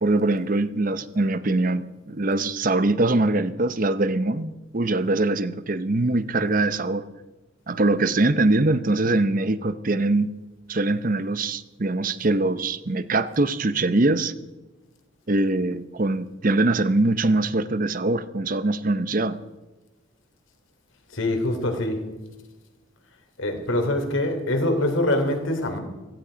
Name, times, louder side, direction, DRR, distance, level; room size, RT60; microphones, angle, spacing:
voice 1, 0.0-7.1 7.7-10.3 10.7-14.3 15.3-19.4, right 2 dB, 45° right, 14 dB, 0.8 m, -23 dB
voice 2, 21.1-22.0 23.4-25.8, left 1 dB, 75° left, 5 dB, 3.2 m, -24 dB
17.0 x 15.5 x 5.1 m, 1.1 s
head